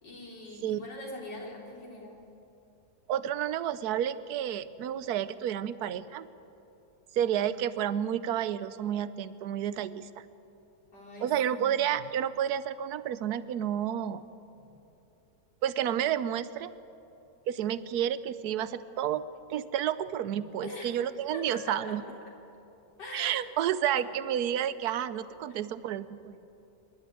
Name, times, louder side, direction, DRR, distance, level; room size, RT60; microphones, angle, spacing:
voice 1, 0.0-2.2 10.9-11.8 14.6-14.7 20.6-22.1 23.0-23.4 23.9-24.1 25.5-25.6, left 1 dB, 85° left, -2 dB, 4.1 m, -43 dB
voice 2, 3.1-6.3 7.1-10.1 11.2-14.2 15.6-16.7 17.5-19.2 19.5-22.0 23.1-26.3, right 10 dB, 70° right, 15 dB, 1.2 m, -30 dB
25.5 x 12.0 x 9.5 m, 2.9 s
omnidirectional pair, 1.8 m